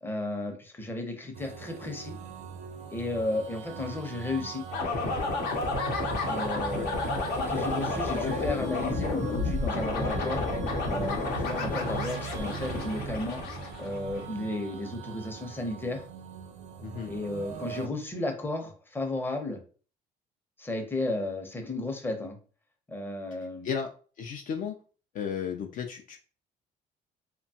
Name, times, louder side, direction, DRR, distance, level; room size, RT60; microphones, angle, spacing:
voice 1, 0.0-2.2 2.9-4.6 6.2-10.4 10.9-13.4 13.8-16.0 17.1-19.6 20.6-22.4 22.9-23.7, left 2 dB, 10° left, 3 dB, 0.6 m, -33 dB
sound 1, 1.3-17.9, right 6 dB, 45° right, 0.4 m, -40 dB
sound 2, 4.7-14.3, left 3 dB, 75° left, 0.8 m, -31 dB
voice 2, 24.2-24.8 25.1-26.2, left 7 dB, 50° left, 5 dB, 0.4 m, -33 dB
2.9 x 2.2 x 2.7 m, 0.39 s
cardioid pair, 110°, 17 cm